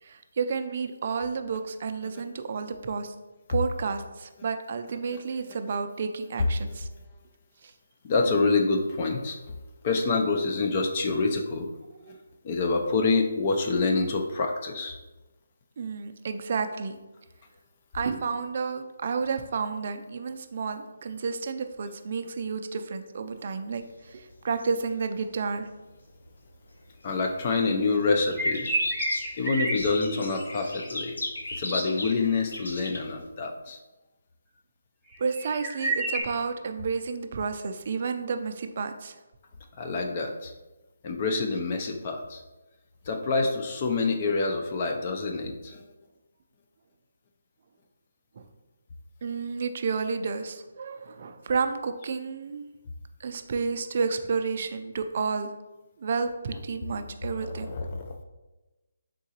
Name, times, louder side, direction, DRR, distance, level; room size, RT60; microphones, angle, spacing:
voice 1, 0.0-3.1 3.5-6.9 7.6-7.7 12.0-12.2 15.8-17.0 17.9-25.7 35.2-39.2 48.4-48.5 49.2-52.7 53.2-55.5 56.0-57.7, right 5 dB, 45° right, 7 dB, 0.4 m, -31 dB
voice 2, 8.0-9.4 9.8-11.7 12.4-15.0 27.0-28.7 29.4-31.2 31.5-33.8 39.8-40.5 41.0-42.4 43.1-45.8 57.4-58.2, left 3 dB, 35° left, 3 dB, 0.4 m, -27 dB
sound 1, 23.8-26.3 26.7-33.2, left 2 dB, 85° left, 0.7 m, -38 dB
sound 2, 28.2-30.9 35.1-36.2, right 2 dB, ahead, 0.7 m, -29 dB
3.8 x 3.7 x 2.9 m, 1.1 s
hypercardioid pair, 160°, 0 cm